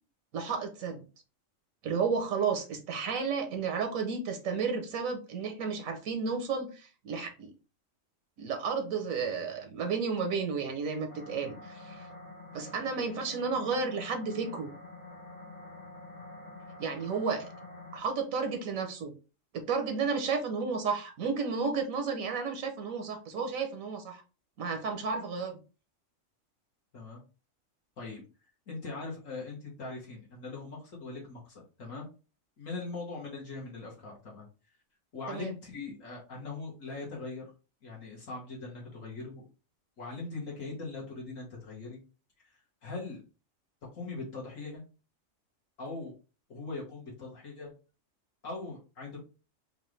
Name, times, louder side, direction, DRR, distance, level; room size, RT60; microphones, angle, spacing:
voice 1, 0.3-1.0 1.8-7.5 8.4-12.1 12.5-14.7 16.8-17.5 17.9-19.1 19.5-24.2 24.6-25.6 35.3-35.5, right 5 dB, 85° right, 5 dB, 1.2 m, -32 dB
sound 1, 11.1-18.0, left 2 dB, 45° left, 1.4 m, -47 dB
voice 2, 28.7-32.1 32.6-34.5 35.1-37.4 37.8-39.5 40.0-42.0 42.4-43.2 43.9-44.8 45.8-46.1 46.5-47.7 48.4-49.2, left 3 dB, 75° left, -4 dB, 1.7 m, -41 dB
4.7 x 2.5 x 3.1 m, 0.33 s
omnidirectional pair, 1.4 m